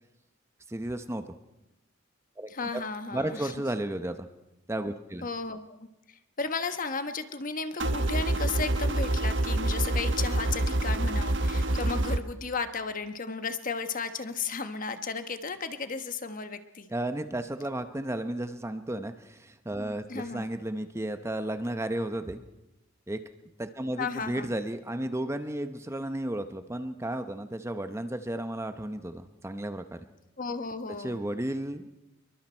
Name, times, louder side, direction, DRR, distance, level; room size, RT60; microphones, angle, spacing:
voice 1, 0.7-1.2 2.4-2.5 3.1-4.3 4.7-5.3 16.9-22.4 23.1-23.2 23.6-30.0 31.0-31.9, right 1 dB, 15° right, 9 dB, 0.8 m, -33 dB
voice 2, 2.5-3.5 5.2-16.9 20.1-20.5 24.0-24.6 30.4-31.2, left 4 dB, 40° left, 9 dB, 1.2 m, -34 dB
sound 1, 7.8-12.2, right 1 dB, 60° right, 1.2 m, -27 dB
26.5 x 23.0 x 4.5 m, 0.93 s
head